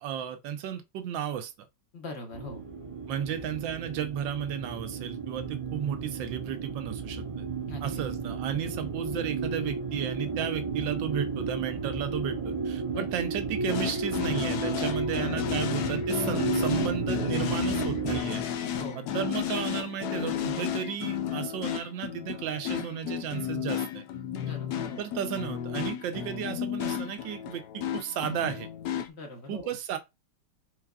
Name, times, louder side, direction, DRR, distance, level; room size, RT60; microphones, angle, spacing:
voice 1, 0.0-1.7 3.1-7.5 7.8-24.0 25.0-28.7 29.5-30.0, right 9 dB, 80° right, 1.3 m, -34 dB
voice 2, 1.9-2.6 7.7-8.0 12.9-13.1 15.9-16.0 18.7-19.1 24.5-25.0 29.1-29.7, left 2 dB, 45° left, 0.9 m, -41 dB
sound 1, 2.3-18.2, right 4 dB, 65° right, 0.3 m, -33 dB
sound 2, 13.7-29.1, left 9 dB, 70° left, 1.0 m, -33 dB
4.7 x 3.9 x 2.3 m
omnidirectional pair, 2.1 m